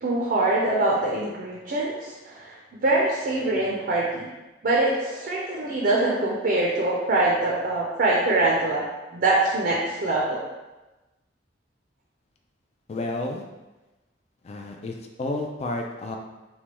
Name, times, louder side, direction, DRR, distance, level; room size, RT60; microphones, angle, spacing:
voice 1, 0.0-4.3 4.6-8.8 9.1-10.4, right 2 dB, 50° right, -4 dB, 0.4 m, -24 dB
voice 2, 12.9-13.4 14.4-16.2, left 2 dB, 35° left, 3 dB, 0.3 m, -31 dB
3.3 x 2.2 x 2.9 m, 1.1 s
head